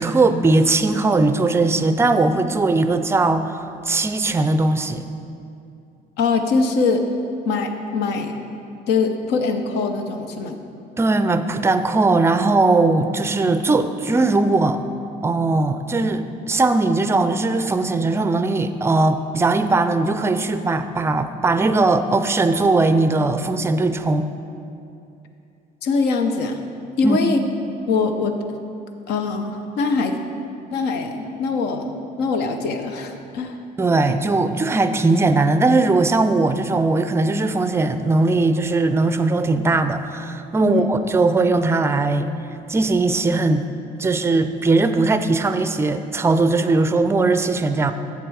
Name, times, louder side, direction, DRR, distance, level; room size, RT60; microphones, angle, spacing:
voice 1, 0.0-5.1 11.0-14.8 15.2-24.3 27.0-27.2 33.8-42.3 42.7-43.7 44.0-47.9, right 3 dB, 15° right, 10 dB, 0.4 m, -19 dB
voice 2, 6.2-7.0 7.4-8.3 8.9-10.6 25.8-26.6 27.0-27.4 27.9-28.4 29.1-30.2 30.7-33.6 40.6-40.9, left 4 dB, 80° left, 6 dB, 0.8 m, -22 dB
7.7 x 7.3 x 4.8 m, 2.6 s
cardioid pair, 110°, 17 cm